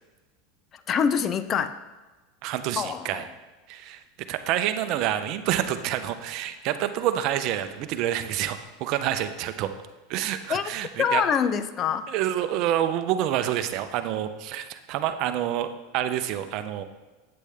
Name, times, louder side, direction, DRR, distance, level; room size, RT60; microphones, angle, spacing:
voice 1, 0.7-1.8 2.8-3.2 10.5-10.6 11.0-12.1, left 7 dB, 35° left, 12 dB, 0.5 m, -25 dB
voice 2, 2.4-3.2 3.7-4.0 4.3-9.7 10.1-11.2 12.1-16.8, right 11 dB, 55° right, 10 dB, 0.7 m, -28 dB
8.6 x 8.2 x 3.5 m, 1.2 s
supercardioid pair, 120°, 0 cm